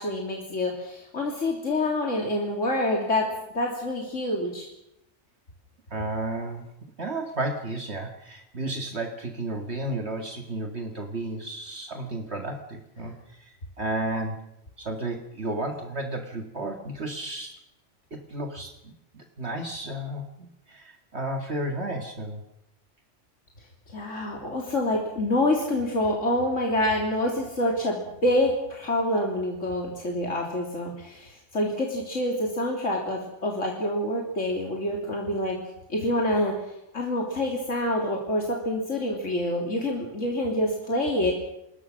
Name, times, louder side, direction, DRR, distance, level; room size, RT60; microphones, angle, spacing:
voice 1, 0.0-4.7 23.9-35.6 35.9-36.5 36.9-41.3, left 1 dB, 85° left, 0 dB, 3.6 m, -27 dB
voice 2, 5.9-6.6 7.0-14.5 14.8-17.6 18.1-22.4, right 2 dB, 60° right, 4 dB, 2.3 m, -33 dB
27.5 x 21.0 x 6.4 m, 0.85 s
omnidirectional pair, 1.2 m